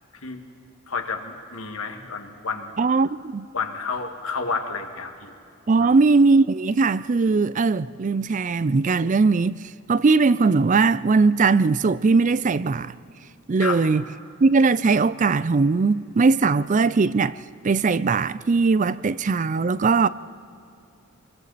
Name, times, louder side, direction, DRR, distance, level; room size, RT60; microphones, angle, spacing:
voice 1, 0.9-2.7 3.5-5.3 5.8-6.0 13.6-13.8, left 4 dB, 85° left, 1.9 m, -30 dB
voice 2, 2.8-3.5 5.7-9.6 9.9-12.9 13.5-14.0 14.4-17.4 17.6-20.1, right 4 dB, 35° right, 0.4 m, -20 dB
28.0 x 22.0 x 4.2 m
head